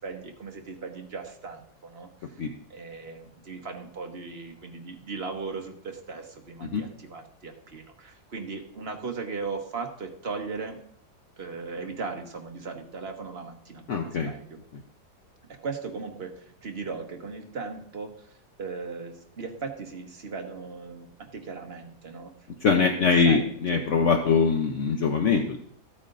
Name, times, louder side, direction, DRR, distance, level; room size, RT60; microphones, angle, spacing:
voice 1, 0.0-2.4 2.7-10.8 11.4-14.6 15.6-18.3 18.6-22.3 22.8-23.8, right 4 dB, 40° right, 3 dB, 1.4 m, -38 dB
voice 2, 13.9-14.3 14.7-14.8 22.6-25.6, left 5 dB, 55° left, 3 dB, 1.0 m, -23 dB
14.0 x 8.7 x 2.6 m, 0.66 s
omnidirectional pair, 1.7 m